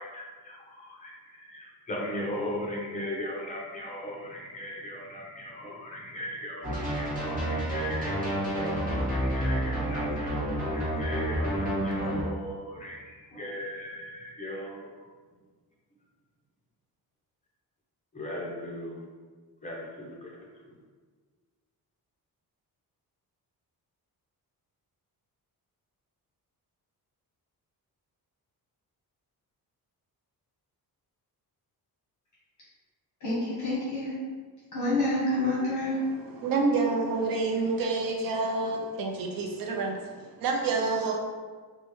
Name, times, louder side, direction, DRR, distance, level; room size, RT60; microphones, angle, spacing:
voice 1, 0.0-14.9 18.1-19.0 19.6-20.3, left 1 dB, 20° left, -3 dB, 0.7 m, -38 dB
sound 1, 6.6-12.2, right 1 dB, 20° right, 1.1 m, -29 dB
voice 2, 33.2-34.1 34.7-36.0, left 2 dB, 50° left, -8 dB, 1.0 m, -28 dB
voice 3, 35.9-41.2, right 3 dB, 65° right, 0 dB, 0.6 m, -28 dB
4.2 x 2.3 x 3.0 m, 1.5 s
wide cardioid pair, 150°, 38 cm